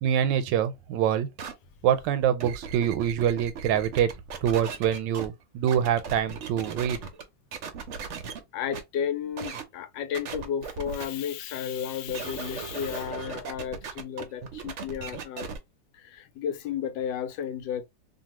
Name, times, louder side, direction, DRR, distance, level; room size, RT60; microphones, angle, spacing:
voice 1, 0.0-1.3 1.8-4.1 4.4-7.0, right 9 dB, 90° right, 1.3 m, -25 dB
sound 1, 1.4-1.5 2.2-5.3 5.7-7.2 7.5-8.4 8.7-8.8 9.4-9.6 10.1-11.0 12.1-15.6, right 6 dB, 60° right, 0.8 m, -37 dB
voice 2, 8.5-15.5 15.9-17.8, left 8 dB, 90° left, 1.3 m, -33 dB
2.7 x 2.6 x 2.9 m
omnidirectional pair, 1.9 m